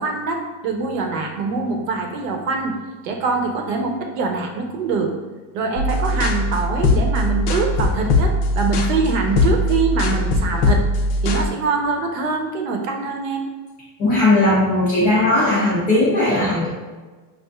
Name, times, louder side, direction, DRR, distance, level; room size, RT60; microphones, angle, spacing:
voice 1, 0.0-2.8 3.0-5.1 5.5-10.9 11.2-13.4, right 4 dB, 60° right, 3 dB, 0.7 m, -23 dB
sound 1, 5.8-11.5, left 2 dB, 75° left, 0.7 m, -20 dB
voice 2, 14.0-16.7, left 2 dB, 20° left, -8 dB, 0.4 m, -17 dB
5.5 x 2.5 x 2.2 m, 1.3 s
supercardioid pair, 175°, 45 cm